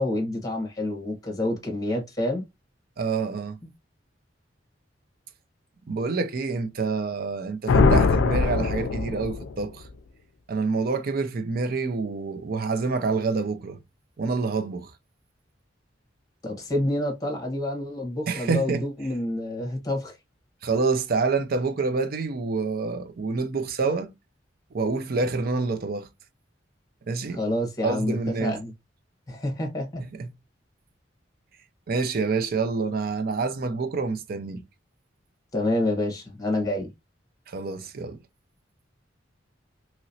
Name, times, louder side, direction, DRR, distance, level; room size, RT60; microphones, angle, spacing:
voice 1, 0.0-2.4 16.4-20.1 27.3-28.7 29.3-30.0 35.5-36.9, left 1 dB, 20° left, 1.2 m, -28 dB
voice 2, 3.0-3.6 5.9-9.8 10.5-13.8 14.2-14.9 18.3-18.9 20.6-24.1 24.7-26.1 27.1-27.4 27.8-28.6 30.1-30.3 31.9-34.6 37.5-38.2, right 4 dB, 55° right, 0.5 m, -27 dB
sound 1, 7.7-9.6, left 4 dB, 85° left, 0.4 m, -21 dB
3.0 x 2.9 x 2.7 m
head